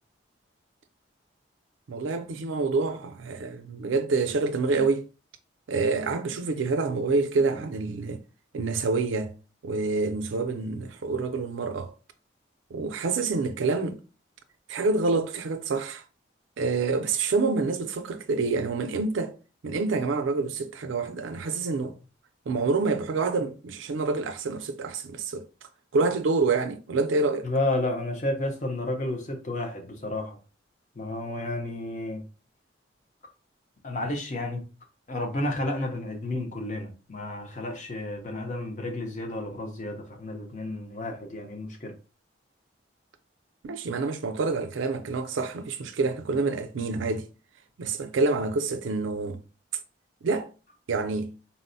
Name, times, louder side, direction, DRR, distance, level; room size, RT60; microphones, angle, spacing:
voice 1, 1.9-5.1 5.7-8.2 8.5-9.3 9.6-11.9 12.7-14.0 14.7-16.0 16.6-19.3 19.6-22.0 22.5-25.5 25.9-27.5 43.6-47.3 47.8-49.4 50.2-50.5 50.9-51.3, right 3 dB, 85° right, 0.4 m, -27 dB
voice 2, 27.4-30.4 31.0-32.2 33.8-34.6 35.1-41.9, left 2 dB, 40° left, 0.6 m, -31 dB
3.9 x 2.0 x 2.6 m
head